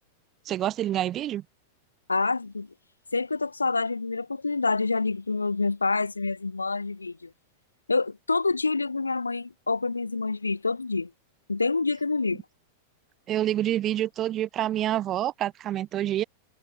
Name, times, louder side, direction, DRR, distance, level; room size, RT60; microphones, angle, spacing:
voice 1, 0.5-1.4 13.3-16.2, right 12 dB, 35° right, 1.2 m, -27 dB
voice 2, 2.1-2.7 3.1-7.3 7.9-11.1 11.5-12.4, left 3 dB, 85° left, 0.4 m, -27 dB
figure-of-eight pair, 95°, 0 cm